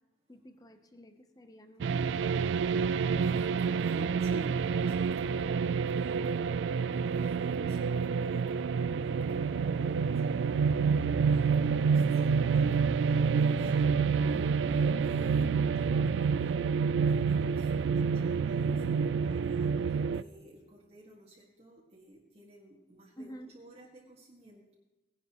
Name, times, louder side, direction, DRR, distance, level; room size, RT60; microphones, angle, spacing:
voice 1, 0.3-2.6 23.2-23.5, equal, 20° left, 8 dB, 0.8 m, -49 dB
sound 1, 1.8-20.2, right 5 dB, 80° right, 0.3 m, -28 dB
voice 2, 3.1-24.7, right 1 dB, 35° right, -3 dB, 1.7 m, -53 dB
18.0 x 10.5 x 3.0 m, 1.1 s
head